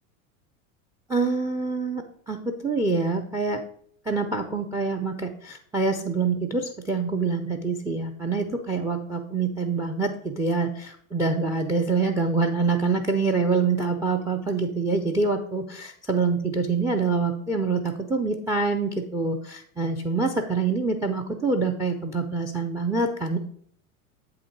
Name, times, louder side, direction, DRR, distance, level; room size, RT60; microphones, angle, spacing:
voice 1, 1.1-3.6 4.1-23.4, right 4 dB, 10° right, 6 dB, 0.4 m, -26 dB
7.7 x 3.6 x 4.5 m, 0.62 s
hypercardioid pair, 90°, 42 cm